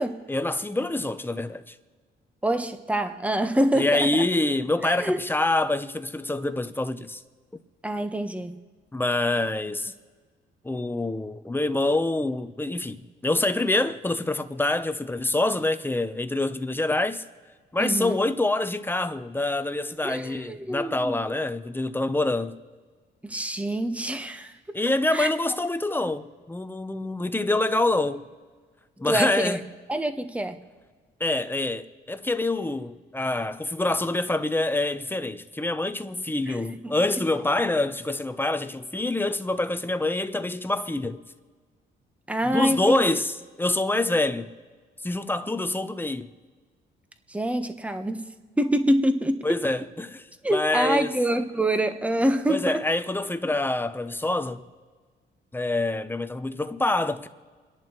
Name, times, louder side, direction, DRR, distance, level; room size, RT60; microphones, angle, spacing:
voice 1, 0.3-1.7 3.7-7.2 8.9-9.9 10.6-17.2 17.7-22.6 24.7-28.3 29.0-29.6 31.2-41.2 42.4-44.5 45.0-46.3 49.4-50.2 50.5-51.1 52.5-54.7 55.5-57.3, left 2 dB, 10° left, 0.8 m, -26 dB
voice 2, 2.4-4.1 4.8-5.2 7.8-8.5 17.8-18.2 20.0-21.2 23.2-24.8 25.1-25.3 29.1-29.6 29.9-30.6 36.5-36.6 36.8-37.2 42.3-43.1 47.3-48.2 48.6-49.4 50.4-52.8 53.4-53.5, right 1 dB, 5° right, 1.1 m, -26 dB
29.0 x 11.0 x 3.1 m
cardioid pair, 90°, 20 cm